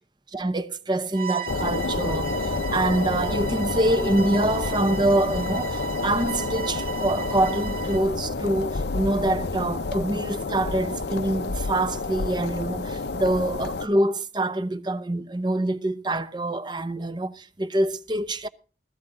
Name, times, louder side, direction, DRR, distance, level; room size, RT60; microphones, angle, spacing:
voice 1, 0.3-18.5, right 1 dB, 25° right, 0.8 m, -25 dB
Bowed string instrument, 1.1-8.1, right 8 dB, 50° right, 1.0 m, -35 dB
sound 1, 1.5-13.9, left 3 dB, 65° left, 0.7 m, -29 dB
16.5 x 14.0 x 3.8 m
head